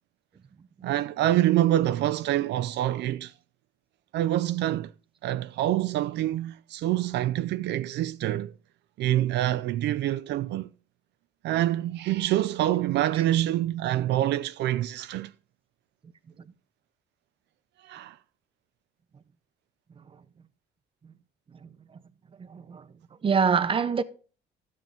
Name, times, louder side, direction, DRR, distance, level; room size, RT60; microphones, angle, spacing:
voice 1, 0.8-3.3 4.1-4.9 5.2-8.5 9.0-10.7 11.4-15.3 17.8-18.2, right 13 dB, 70° right, 0.4 m, -26 dB
voice 2, 22.4-22.9 23.2-24.0, right 6 dB, 30° right, 0.7 m, -26 dB
12.5 x 7.5 x 3.5 m
cardioid pair, 110°, 18 cm